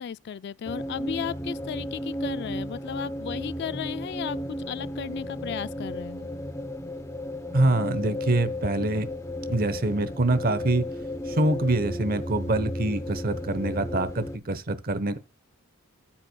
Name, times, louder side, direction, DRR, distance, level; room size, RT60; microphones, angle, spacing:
voice 1, 0.0-6.3, left 8 dB, 50° left, 0.3 m, -35 dB
sound 1, 0.7-14.4, left 1 dB, 15° left, 0.7 m, -34 dB
voice 2, 7.5-9.1 9.5-10.9 11.3-15.2, right 2 dB, 40° right, 0.9 m, -25 dB
14.0 x 7.5 x 2.2 m
head